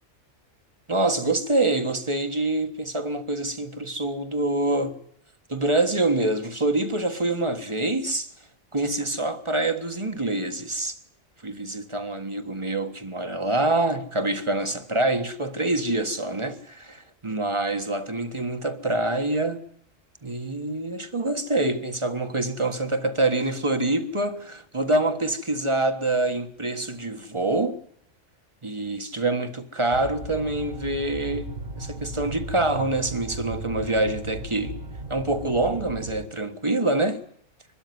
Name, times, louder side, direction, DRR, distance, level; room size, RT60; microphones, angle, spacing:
voice 1, 0.9-5.0 5.5-8.3 8.7-11.0 11.4-19.6 20.2-27.8 28.6-34.7 35.1-37.2, right 2 dB, 25° right, 1.5 m, -26 dB
sound 1, 29.9-36.3, right 2 dB, 45° right, 1.9 m, -36 dB
23.5 x 13.0 x 9.5 m
omnidirectional pair, 1.3 m